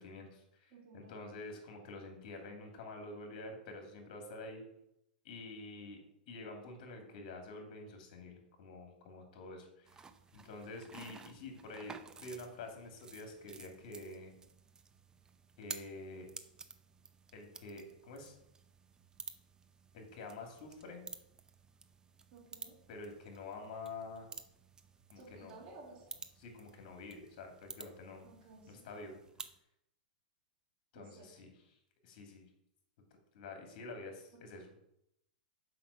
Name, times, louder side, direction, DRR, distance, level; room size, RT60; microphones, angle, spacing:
voice 1, 0.0-4.6 5.2-6.0 6.3-10.0 10.3-14.3 15.6-16.3 17.3-18.3 19.9-21.0 22.9-24.3 25.1-25.5 26.4-28.3 28.7-29.2 30.9-31.5 32.0-32.5 33.3-34.7, left 2 dB, 55° left, 3 dB, 2.6 m, -48 dB
voice 2, 0.7-1.2 22.3-22.8 25.1-26.0 28.2-29.2 30.9-31.3 34.3-34.4, right 3 dB, 40° right, -8 dB, 3.6 m, -56 dB
sound 1, 9.9-29.6, right 5 dB, 15° right, 0.6 m, -53 dB
5.9 x 5.3 x 6.7 m, 0.80 s
hypercardioid pair, 120°, 5 cm